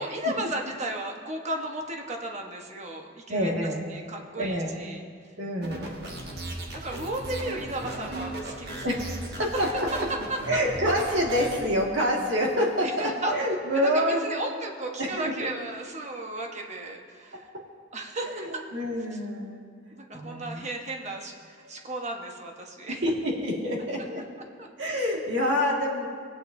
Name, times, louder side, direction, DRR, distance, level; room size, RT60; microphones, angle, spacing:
voice 1, 0.0-3.6 3.9-5.0 6.7-8.9 10.3-10.4 12.8-13.3 13.7-17.5 17.9-18.6 19.9-23.0 24.6-24.7, right 1 dB, 40° right, 2 dB, 1.1 m, -34 dB
voice 2, 3.3-3.8 4.3-4.8 5.4-5.9 8.8-9.7 10.5-14.3 15.0-15.3 18.3-19.6 20.1-20.6 22.9-24.2 24.8-26.1, equal, 80° right, -1 dB, 1.9 m, -27 dB
sound 1, 5.6-11.6, right 1 dB, 60° right, 1.6 m, -36 dB
20.0 x 8.3 x 2.7 m, 2.2 s
head